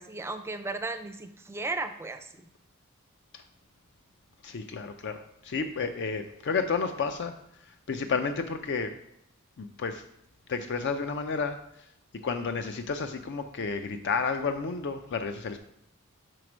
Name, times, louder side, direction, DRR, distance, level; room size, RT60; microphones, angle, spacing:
voice 1, 0.0-2.4, right 3 dB, 10° right, 8 dB, 0.4 m, -35 dB
voice 2, 4.4-7.3 7.7-8.9 9.6-10.0 10.5-11.6 12.2-15.6, left 5 dB, 55° left, 7 dB, 0.4 m, -31 dB
5.0 x 4.7 x 6.1 m, 0.77 s
head